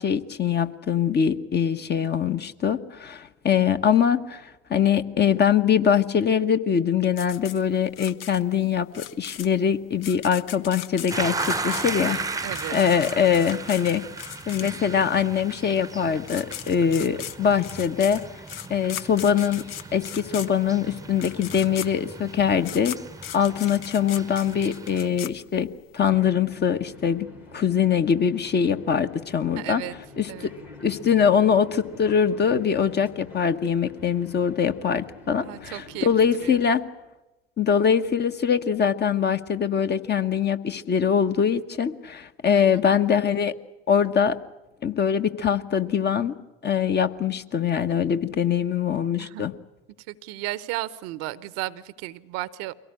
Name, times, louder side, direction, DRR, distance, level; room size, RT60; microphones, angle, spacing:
voice 1, 0.0-14.1 14.5-18.2 18.7-22.9 23.3-25.7 25.9-27.3 27.5-29.8 30.2-30.5 30.8-36.8 37.6-43.5 43.9-44.4 44.8-46.4 46.6-49.5, left 7 dB, 35° left, 9 dB, 1.2 m, -23 dB
sound 1, 7.2-15.1 15.9-16.0 16.2-25.9, left 11 dB, 75° left, 0.8 m, -38 dB
sound 2, 11.1-25.1, right 3 dB, 10° right, 0.9 m, -36 dB
voice 2, 12.0-12.8 29.6-29.9 30.3-30.5 35.4-36.1 36.4-36.6 42.5-42.7 49.2-49.4 50.1-52.7, right 17 dB, 60° right, 18 dB, 0.9 m, -34 dB
sound 3, 26.1-36.6, left 2 dB, 90° left, 3.2 m, -46 dB
23.5 x 17.5 x 9.8 m, 1.0 s
figure-of-eight pair, 60°, 30 cm